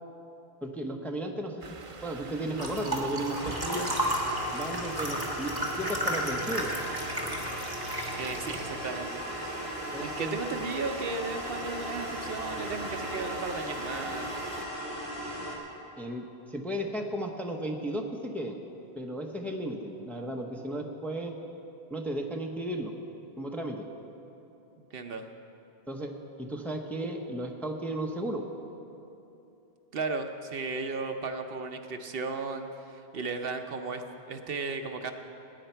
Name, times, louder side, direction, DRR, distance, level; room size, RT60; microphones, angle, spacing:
voice 1, 0.6-1.6 2.0-3.9 4.5-6.7 9.9-10.4 16.0-18.6 18.9-21.3 21.9-22.9 23.4-23.9 25.9-26.1 26.4-28.5, right 1 dB, ahead, 1 dB, 0.8 m, -34 dB
sound 1, 1.6-14.7, right 3 dB, 35° right, 0.7 m, -44 dB
sound 2, 2.6-8.6, right 1 dB, 20° right, 1.6 m, -33 dB
sound 3, 3.3-15.6, equal, 70° left, 2.2 m, -37 dB
voice 2, 8.2-9.2 10.0-14.3 24.9-25.2 29.9-34.0 34.3-35.1, right 4 dB, 65° right, 6 dB, 0.9 m, -35 dB
20.0 x 9.6 x 4.5 m, 2.9 s
omnidirectional pair, 1.1 m